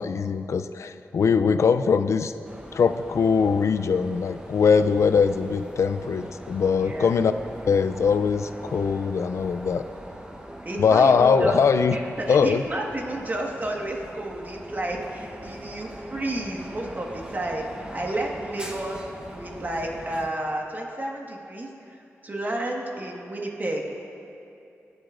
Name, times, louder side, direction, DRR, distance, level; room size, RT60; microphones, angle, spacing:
voice 1, 0.0-2.3 2.7-7.3 7.7-9.8 10.8-12.0 12.3-12.6, left 5 dB, 75° left, 11 dB, 0.4 m, -21 dB
sound 1, 2.4-20.3, right 1 dB, 15° right, 1.0 m, -41 dB
voice 2, 10.6-11.6 11.9-12.0 12.3-19.0 19.3-21.7 22.2-23.8, right 1 dB, 35° right, -1 dB, 1.5 m, -31 dB
23.0 x 8.0 x 2.5 m, 2.8 s
wide cardioid pair, 75°, 5 cm